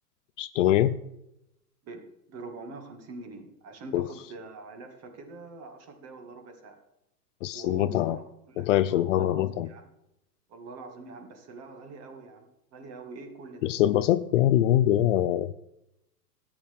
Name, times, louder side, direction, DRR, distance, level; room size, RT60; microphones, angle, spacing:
voice 1, 0.4-1.0 3.9-4.0 7.4-8.2 8.6-9.7 13.6-15.5, left 12 dB, 50° left, 13 dB, 0.6 m, -23 dB
voice 2, 1.8-6.8 7.5-9.8 10.5-13.7, right 3 dB, 30° right, 5 dB, 2.1 m, -44 dB
13.5 x 9.4 x 3.6 m, 0.83 s
hypercardioid pair, 125°, 48 cm